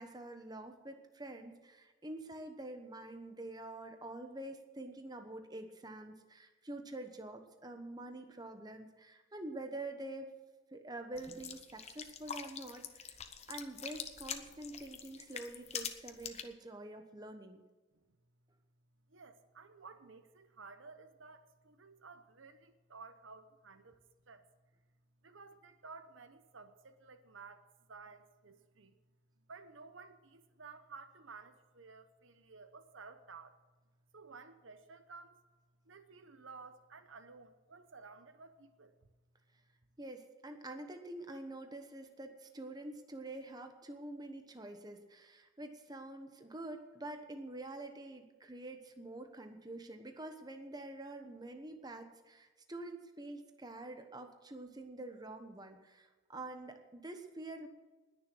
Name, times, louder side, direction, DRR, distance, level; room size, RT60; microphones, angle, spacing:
voice 1, 0.0-10.3 10.7-13.2 13.5-17.6 40.0-57.7, right 2 dB, 20° right, 6 dB, 1.1 m, -47 dB
sound 1, 11.1-16.4, left 7 dB, 30° left, 0.9 m, -44 dB
voice 2, 19.1-24.5 25.2-29.0 29.5-33.6 34.1-35.4 35.8-39.0, right 4 dB, 70° right, 10 dB, 0.9 m, -54 dB
20.0 x 7.0 x 6.3 m, 1.2 s
head